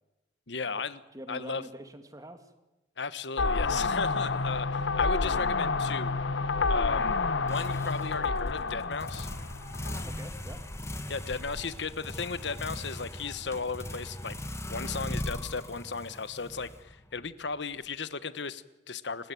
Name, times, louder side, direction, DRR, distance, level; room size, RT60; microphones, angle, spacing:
voice 1, 0.5-1.0 1.3-1.6 3.0-6.2 6.7-7.2 7.4-9.3 11.1-14.4 14.7-19.3, left 4 dB, 70° left, 15 dB, 1.2 m, -35 dB
voice 2, 1.1-2.5 10.0-10.6, equal, 20° right, 8 dB, 2.3 m, -45 dB
sound 1, 3.4-10.1, left 4 dB, 90° left, 1.0 m, -29 dB
sound 2, 7.5-17.3, left 1 dB, 15° left, 1.6 m, -39 dB
29.5 x 15.5 x 9.3 m, 1.0 s
head